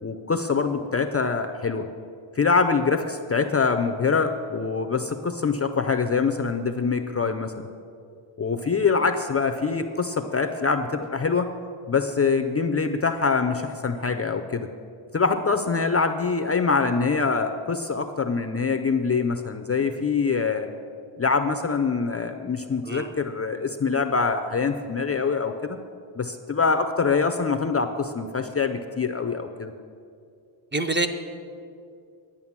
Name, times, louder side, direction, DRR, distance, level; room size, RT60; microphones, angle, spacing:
voice 1, 0.0-1.9 2.3-7.7 8.4-11.5 11.9-14.7 15.1-20.7 21.2-25.8 26.2-29.7, left 5 dB, 30° left, 7 dB, 0.4 m, -24 dB
voice 2, 30.7-31.1, right 2 dB, 25° right, 6 dB, 0.5 m, -25 dB
11.0 x 8.8 x 7.2 m, 2.4 s
wide cardioid pair, 180°, 49 cm